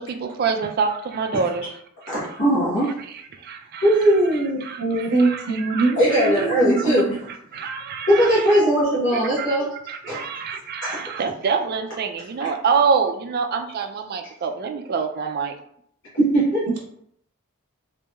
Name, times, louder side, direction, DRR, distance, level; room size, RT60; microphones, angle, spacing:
voice 1, 0.0-1.7 2.0-2.4 3.3-4.2 4.6-6.5 7.3-8.6 9.4-9.6 9.9-15.5, right 5 dB, 45° right, 6 dB, 0.3 m, -26 dB
voice 2, 2.1-2.9 3.8-4.6 5.9-7.2 8.1-9.7 10.1-10.2 10.8-11.0 16.2-16.7, right 1 dB, 55° left, -8 dB, 1.1 m, -19 dB
voice 3, 4.8-6.9 16.7-16.8, right 3 dB, 90° right, 0 dB, 0.6 m, -22 dB
3.0 x 2.6 x 2.3 m, 0.68 s
head